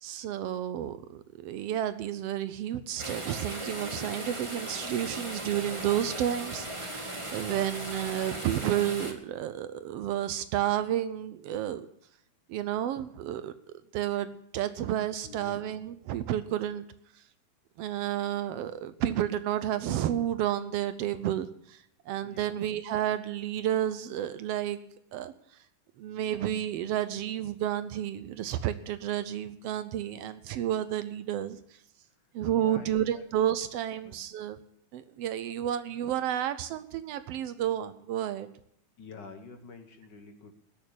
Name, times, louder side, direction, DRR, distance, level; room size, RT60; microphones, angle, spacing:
voice 1, 0.0-11.9 12.5-13.5 13.9-16.9 17.1-17.2 17.8-24.8 25.1-25.6 26.0-31.8 32.3-34.6 34.9-38.5, right 11 dB, 85° right, 12 dB, 1.4 m, -31 dB
sound 1, 3.0-9.1, right 1 dB, 20° right, 0.9 m, -37 dB
voice 2, 15.2-15.7 22.2-22.6 32.5-33.2 34.0-34.2 39.0-40.6, left 4 dB, 65° left, 6 dB, 1.1 m, -48 dB
19.5 x 6.7 x 8.4 m, 0.72 s
omnidirectional pair, 3.5 m